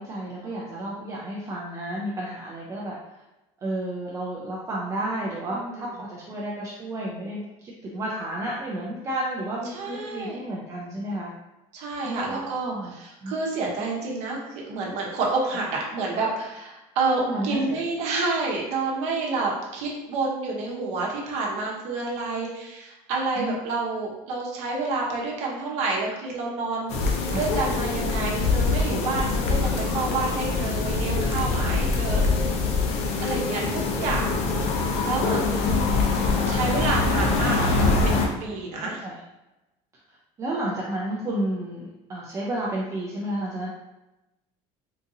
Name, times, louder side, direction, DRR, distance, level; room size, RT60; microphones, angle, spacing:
voice 1, 0.0-2.9 3.6-11.3 12.0-12.9 13.2-13.3 17.2-17.8 23.4-23.6 27.3-27.5 35.7-35.8 36.6-36.8 38.8-39.2 40.1-43.7, right 1 dB, 25° right, -4 dB, 0.4 m, -31 dB
voice 2, 5.5-5.9 9.7-10.4 11.7-32.4 33.2-34.3 35.0-35.7 36.5-39.0, right 3 dB, 60° right, -2 dB, 0.9 m, -29 dB
sound 1, 26.9-38.3, left 3 dB, 60° left, 0.6 m, -24 dB
3.8 x 2.5 x 2.7 m, 0.99 s
cardioid pair, 145°, 13 cm